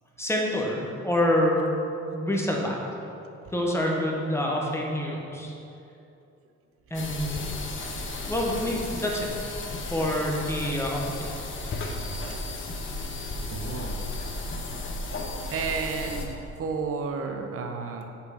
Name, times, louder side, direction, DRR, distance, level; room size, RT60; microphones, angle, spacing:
voice 1, 0.2-1.7 2.1-2.8 3.5-5.6 6.9-7.5 8.3-9.3 9.9-11.3, left 1 dB, 10° left, -2 dB, 1.0 m, -27 dB
sound 1, 6.9-16.3, left 2 dB, 40° left, 0.8 m, -34 dB
voice 2, 13.5-14.0 14.7-14.8 15.5-18.1, right 5 dB, 50° right, 4 dB, 0.6 m, -32 dB
5.6 x 3.8 x 4.8 m, 2.7 s
cardioid pair, 90°, 30 cm